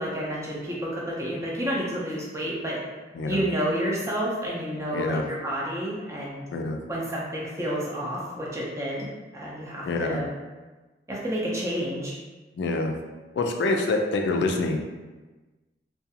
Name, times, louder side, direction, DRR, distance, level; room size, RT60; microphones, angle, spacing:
voice 1, 0.0-2.8 3.3-6.4 6.9-9.1 9.3-10.3 11.1-12.1, equal, 15° right, -5 dB, 0.5 m, -30 dB
voice 2, 3.1-3.5 4.9-5.2 6.5-6.8 9.8-10.2 12.6-12.9 13.4-14.8, left 3 dB, 85° left, 3 dB, 0.3 m, -26 dB
2.5 x 2.3 x 2.7 m, 1.2 s
head